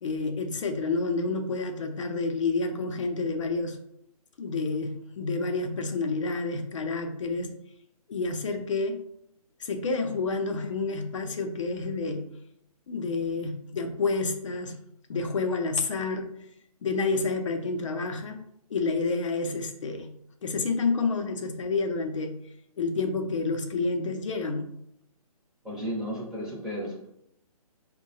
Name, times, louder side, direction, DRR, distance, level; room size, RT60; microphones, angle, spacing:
voice 1, 0.0-3.8 4.4-7.5 8.1-9.0 9.6-12.2 12.9-14.8 15.1-16.4 16.8-18.4 18.7-20.1 20.4-22.4 22.8-24.7, left 3 dB, 55° left, 5 dB, 0.5 m, -29 dB
voice 2, 25.6-27.1, equal, 5° right, -6 dB, 0.6 m, -33 dB
4.5 x 2.2 x 2.7 m, 0.76 s
figure-of-eight pair, 145°, 20 cm